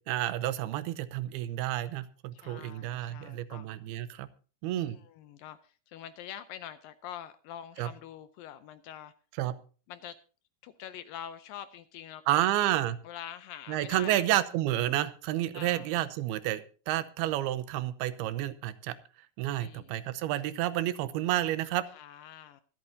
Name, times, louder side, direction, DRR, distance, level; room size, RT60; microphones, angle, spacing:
voice 1, 0.1-4.3 4.6-5.0 7.8-7.9 9.4-9.5 12.3-13.0 13.7-18.9 19.4-21.9, right 14 dB, 85° right, 14 dB, 2.7 m, -30 dB
voice 2, 2.3-3.7 4.8-9.1 9.9-10.1 10.6-12.5 13.0-14.3 15.5-15.9 19.6-20.0 21.9-22.6, left 10 dB, 75° left, 12 dB, 2.2 m, -45 dB
24.0 x 8.8 x 2.7 m, 0.36 s
omnidirectional pair, 4.5 m